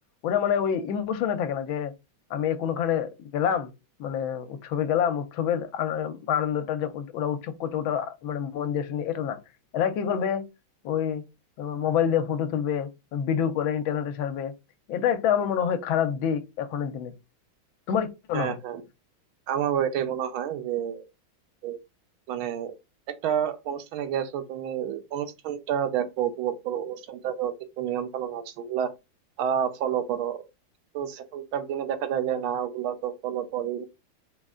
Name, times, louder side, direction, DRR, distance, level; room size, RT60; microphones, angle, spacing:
voice 1, 0.2-1.9 2.3-3.7 4.0-9.4 9.7-10.5 10.8-11.2 11.6-14.5 14.9-17.1 17.9-18.6, left 8 dB, 80° left, 1.4 m, -27 dB
voice 2, 18.3-18.8 19.5-21.0 21.6-21.8 22.3-22.7 23.2-28.9 29.4-30.4 30.9-33.9, right 9 dB, 80° right, 1.5 m, -29 dB
4.0 x 3.1 x 3.6 m
omnidirectional pair, 2.2 m